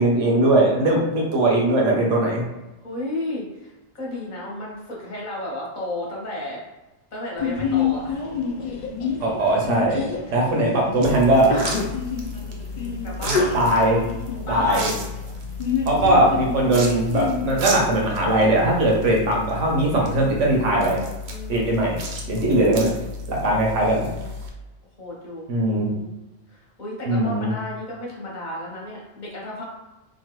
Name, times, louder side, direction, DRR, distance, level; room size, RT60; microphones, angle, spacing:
voice 1, 0.0-2.4 9.2-10.0 10.3-11.5 13.5-14.0 14.5-14.9 15.9-21.0 21.5-22.0 22.3-22.9 23.3-24.1 25.5-25.9 27.1-27.5, right 1 dB, 85° right, -1 dB, 1.1 m, -20 dB
voice 2, 2.8-6.6 7.1-8.2 10.3-10.7 12.7-13.5 14.5-15.0 21.3-21.8 23.5-24.3 25.0-26.1 26.5-29.6, left 1 dB, 40° left, -4 dB, 1.0 m, -34 dB
Sneeze, 7.4-17.4, left 5 dB, 60° left, 0.5 m, -28 dB
sound 1, 11.0-24.5, left 1 dB, 70° right, 0.8 m, -33 dB
2.9 x 2.4 x 3.0 m, 1.0 s
omnidirectional pair, 1.2 m